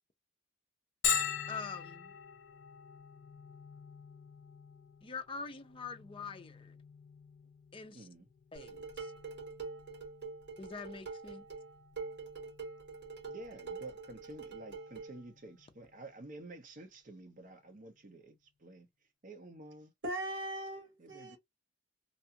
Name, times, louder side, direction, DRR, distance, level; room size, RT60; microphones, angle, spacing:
Bell, 1.0-16.5, left 7 dB, 80° left, 0.6 m, -43 dB
voice 1, 1.5-2.1 5.0-6.8 7.7-8.0 8.5-9.1 10.6-11.4, left 4 dB, 30° left, 0.4 m, -44 dB
voice 2, 7.9-8.3 13.3-18.9 19.2-19.9 21.0-21.4, right 2 dB, 45° right, 0.7 m, -50 dB
Dishes pots and pans, 8.6-15.2, right 4 dB, 60° right, 1.4 m, -45 dB
voice 3, 20.0-21.4, right 1 dB, 75° right, 1.3 m, -39 dB
2.5 x 2.4 x 2.8 m
head